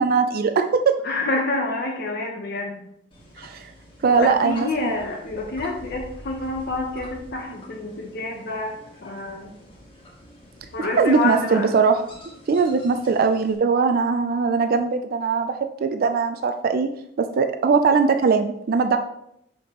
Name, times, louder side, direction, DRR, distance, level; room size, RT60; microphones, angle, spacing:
voice 1, 0.0-1.0 3.4-3.7 4.0-4.9 11.0-12.1 12.5-16.9 17.2-19.0, right 5 dB, 50° right, 7 dB, 0.4 m, -20 dB
voice 2, 1.0-2.9 4.1-8.8 9.0-9.5 10.7-11.7, left 2 dB, 55° left, 0 dB, 0.7 m, -28 dB
sound 1, 3.1-13.6, equal, 30° left, 1.4 m, -46 dB
6.6 x 5.1 x 2.9 m, 0.76 s
head